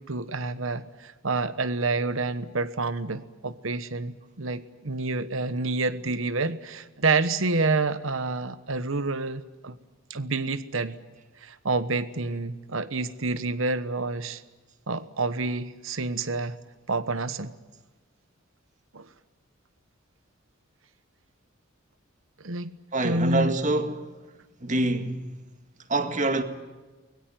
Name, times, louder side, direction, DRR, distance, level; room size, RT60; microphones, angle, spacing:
voice 1, 0.0-9.8 10.1-11.0 11.4-14.4 14.9-16.6 16.9-17.5 18.9-19.1 22.4-22.7 23.0-23.6, right 3 dB, 65° right, 1.2 m, -28 dB
voice 2, 22.9-24.1 24.6-25.4 25.9-26.4, right 2 dB, 35° right, 1.9 m, -26 dB
24.0 x 21.5 x 9.1 m
head